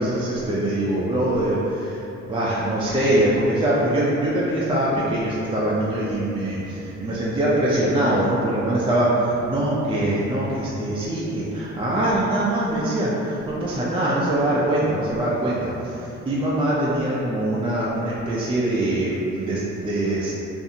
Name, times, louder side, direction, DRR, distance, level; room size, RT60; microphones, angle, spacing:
voice 1, 0.0-20.3, right 1 dB, 20° right, -7 dB, 0.4 m, -23 dB
2.5 x 2.5 x 2.7 m, 2.9 s
cardioid pair, 90°, 30 cm